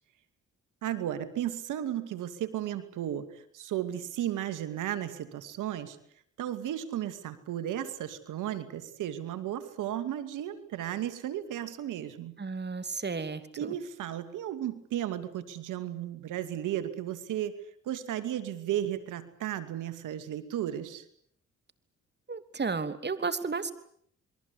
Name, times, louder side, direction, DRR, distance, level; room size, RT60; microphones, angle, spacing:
voice 1, 0.8-6.0 6.4-12.4 13.6-21.0, right 11 dB, 85° right, 12 dB, 2.5 m, -34 dB
voice 2, 12.4-13.7 22.3-23.7, right 4 dB, 35° right, 12 dB, 3.0 m, -33 dB
28.5 x 22.5 x 8.5 m, 0.65 s
cardioid pair, 65°, 30 cm